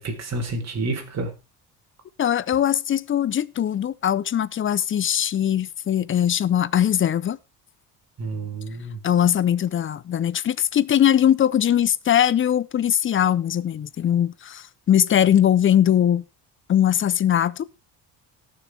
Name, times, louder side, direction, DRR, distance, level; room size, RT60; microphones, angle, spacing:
voice 1, 0.0-1.3 8.2-9.0, right 2 dB, 40° right, 3.9 m, -29 dB
voice 2, 2.2-7.4 9.0-16.2 16.7-17.6, left 10 dB, 30° left, 0.6 m, -21 dB
18.0 x 7.0 x 3.3 m
cardioid pair, 115°, 39 cm